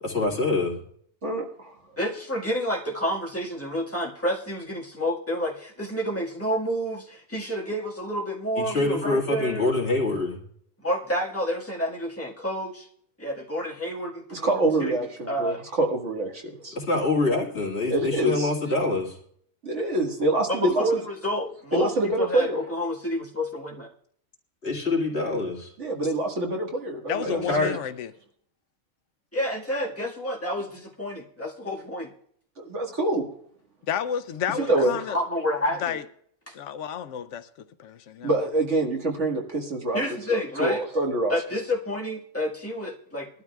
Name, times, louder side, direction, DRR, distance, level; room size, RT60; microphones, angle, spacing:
voice 1, 0.0-0.8 8.6-10.4 16.7-19.2 24.6-25.7 27.2-27.7, left 2 dB, 60° left, 2.3 m, -25 dB
voice 2, 1.2-1.7 14.3-16.8 17.9-18.5 19.6-20.8 21.7-22.6 25.8-27.5 32.6-33.3 34.6-34.9 38.2-40.0 40.3-41.3, right 2 dB, 75° right, 2.1 m, -25 dB
voice 3, 2.0-9.7 10.8-12.9 13.2-15.0 15.2-15.6 19.7-20.0 20.5-21.9 22.2-23.9 29.3-32.1 34.7-36.0 36.5-36.6 39.9-40.8 41.3-43.3, equal, 10° left, 1.7 m, -29 dB
voice 4, 27.1-28.1 33.9-35.2 35.8-36.0 36.5-38.3, left 8 dB, 80° left, 0.9 m, -31 dB
21.0 x 12.0 x 2.3 m
omnidirectional pair, 1.2 m